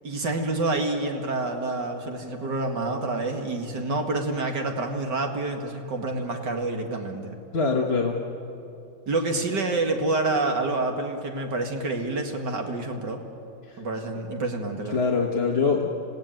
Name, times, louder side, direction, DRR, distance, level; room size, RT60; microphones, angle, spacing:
voice 1, 0.0-7.4 9.1-13.2 13.8-15.0, right 2 dB, 70° right, 3 dB, 2.6 m, -28 dB
voice 2, 7.5-8.2 13.7-13.8 14.9-15.9, left 4 dB, 35° left, 0 dB, 1.6 m, -24 dB
27.5 x 17.0 x 9.1 m, 2.8 s
omnidirectional pair, 2.0 m